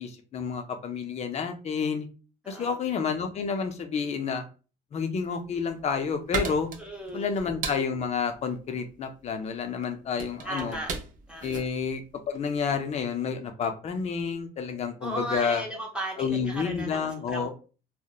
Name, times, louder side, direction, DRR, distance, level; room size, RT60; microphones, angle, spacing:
voice 1, 0.0-2.1 2.5-4.4 4.9-6.7 7.1-10.8 11.4-15.6 16.2-17.5, left 6 dB, 40° left, 7 dB, 0.5 m, -30 dB
voice 2, 2.4-2.8 6.8-7.3 10.4-10.9 11.3-11.7 15.0-17.5, right 1 dB, 5° right, -2 dB, 0.6 m, -36 dB
sound 1, 5.4-12.9, right 5 dB, 50° right, 0.5 m, -38 dB
2.8 x 2.1 x 2.3 m, 0.35 s
cardioid pair, 110°, 17 cm